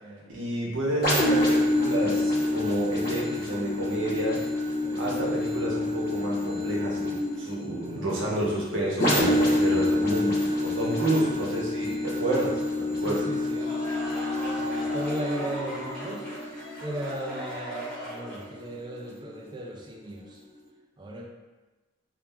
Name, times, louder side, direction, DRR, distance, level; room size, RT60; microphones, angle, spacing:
voice 1, 0.3-4.4 5.0-13.2, right 1 dB, 85° right, -4 dB, 0.7 m, -30 dB
sound 1, 1.0-18.6 19.1-19.2, left 1 dB, 50° left, 0.7 m, -28 dB
voice 2, 13.0-13.7 14.6-16.3 16.8-20.4 21.0-21.3, right 1 dB, 25° right, 0 dB, 0.3 m, -37 dB
sound 2, 13.4-18.6, right 1 dB, 5° left, 0.8 m, -38 dB
2.4 x 2.1 x 3.3 m, 1.2 s
head